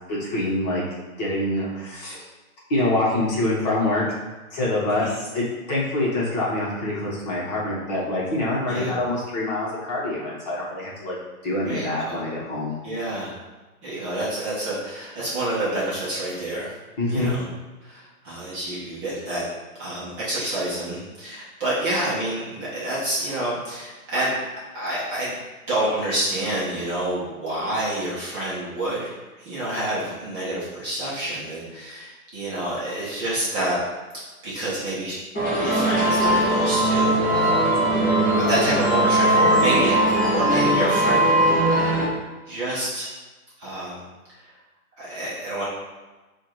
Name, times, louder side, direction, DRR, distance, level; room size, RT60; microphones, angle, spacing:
voice 1, 0.1-0.8 1.2-2.2 2.7-4.0 4.5-11.2 11.4-12.8 17.0-17.4 37.8-38.1, left 1 dB, 30° left, -6 dB, 1.1 m, -25 dB
voice 2, 11.6-12.2 12.8-13.3 13.8-16.7 17.1-17.4 17.8-19.4 19.8-24.3 24.7-25.3 25.7-29.1 29.4-33.8 34.4-35.2 35.4-37.7 38.5-41.4 42.5-43.1 43.6-44.4 45.0-45.7, right 1 dB, 20° right, -8 dB, 0.9 m, -28 dB
sound 1, 35.3-42.0, right 1 dB, 10° left, 0.5 m, -20 dB
4.7 x 2.5 x 4.5 m, 1.2 s
hypercardioid pair, 150°, 44 cm